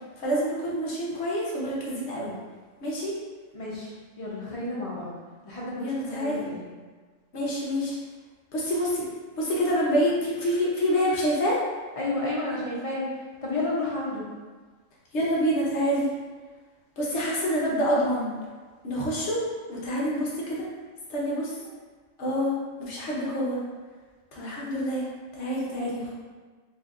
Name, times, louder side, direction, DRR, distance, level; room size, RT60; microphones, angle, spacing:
voice 1, 0.2-2.3 2.8-3.1 5.8-6.4 7.3-8.0 8.5-9.1 9.4-11.6 15.1-16.1 17.0-18.3 18.8-19.4 19.7-20.7 21.1-21.5 22.2-22.5 22.8-23.6 24.3-25.0 25.3-26.1, equal, 60° left, -5 dB, 1.0 m, -27 dB
voice 2, 3.5-3.9 4.2-5.1 5.5-6.6 11.9-13.0 13.4-14.3, left 2 dB, 40° left, -6 dB, 0.5 m, -31 dB
4.1 x 2.6 x 2.4 m, 1.4 s
omnidirectional pair, 1.4 m